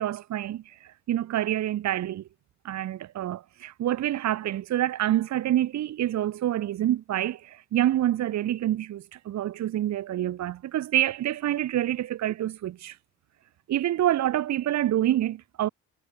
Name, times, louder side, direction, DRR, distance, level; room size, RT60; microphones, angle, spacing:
voice 1, 0.0-2.2 2.6-13.0 13.7-15.7, right 12 dB, 65° right, 1.0 m, -27 dB
cardioid pair, 90°, 30 cm